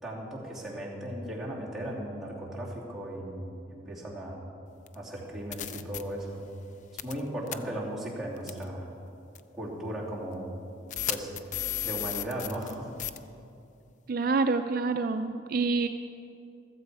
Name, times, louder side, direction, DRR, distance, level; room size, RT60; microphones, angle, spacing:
voice 1, 0.0-4.4 4.9-6.4 7.0-8.9 9.5-10.5 11.1-12.9, right 1 dB, ahead, -7 dB, 2.7 m, -37 dB
sound 1, 4.9-5.0 5.5-6.0 7.0-7.2 7.5-7.6 8.5-8.6 9.4-9.5 10.9-12.7 13.0-13.2, left 11 dB, 40° left, 0.4 m, -33 dB
voice 2, 14.1-15.9, right 4 dB, 50° right, 8 dB, 0.4 m, -27 dB
15.0 x 13.5 x 4.8 m, 2.6 s
head